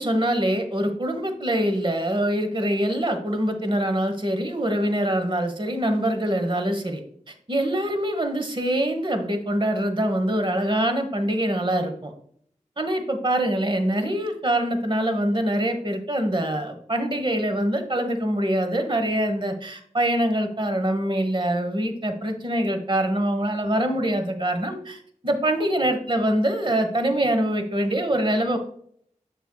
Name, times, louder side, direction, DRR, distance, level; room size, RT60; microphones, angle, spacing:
voice 1, 0.0-7.0 7.3-12.1 12.8-25.0 25.2-28.6, right 1 dB, 40° right, 6 dB, 1.2 m, -24 dB
7.6 x 6.7 x 2.3 m, 0.63 s
wide cardioid pair, 50°, 13 cm